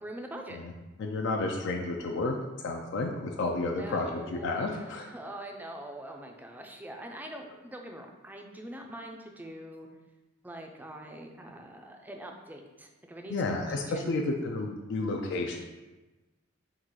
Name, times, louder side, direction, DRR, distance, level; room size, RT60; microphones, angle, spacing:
voice 1, 0.0-0.6 3.5-9.9 10.4-13.6 13.9-14.4, right 1 dB, 10° right, 2 dB, 0.4 m, -43 dB
voice 2, 1.0-2.4 2.6-5.1 13.3-15.6, left 2 dB, 60° left, 2 dB, 0.4 m, -31 dB
3.8 x 2.4 x 4.6 m, 1.1 s
head